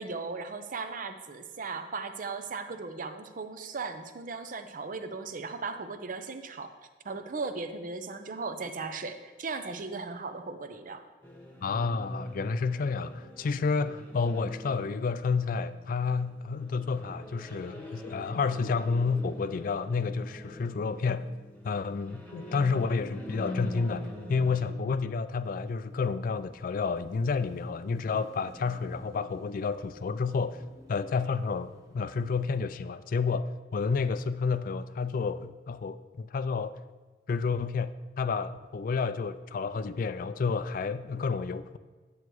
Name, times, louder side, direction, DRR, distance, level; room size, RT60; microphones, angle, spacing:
voice 1, 0.0-6.8 7.0-11.0, right 4 dB, 50° right, 0.6 m, -37 dB
sound 1, 11.2-24.7, left 1 dB, 10° left, 1.2 m, -43 dB
voice 2, 11.6-21.3 21.6-30.6 30.9-36.8 37.3-41.8, left 4 dB, 50° left, 0.3 m, -30 dB
Car passing by / Traffic noise roadway noise / Engine, 25.1-32.5, equal, 20° right, 1.0 m, -55 dB
9.5 x 8.0 x 3.1 m
head